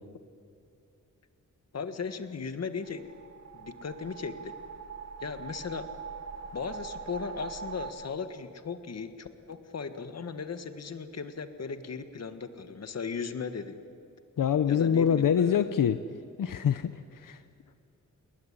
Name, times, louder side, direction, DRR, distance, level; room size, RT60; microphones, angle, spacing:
voice 1, 1.7-3.1 3.5-4.6 5.2-5.9 6.5-13.8 14.7-15.9, left 5 dB, 50° left, 9 dB, 1.6 m, -37 dB
sound 1, 2.8-7.9, right 6 dB, 55° right, 2.1 m, -42 dB
voice 2, 14.4-16.0 16.4-17.4, left 8 dB, 80° left, 10 dB, 0.9 m, -25 dB
29.0 x 20.0 x 9.9 m, 2.6 s
wide cardioid pair, 160°, 32 cm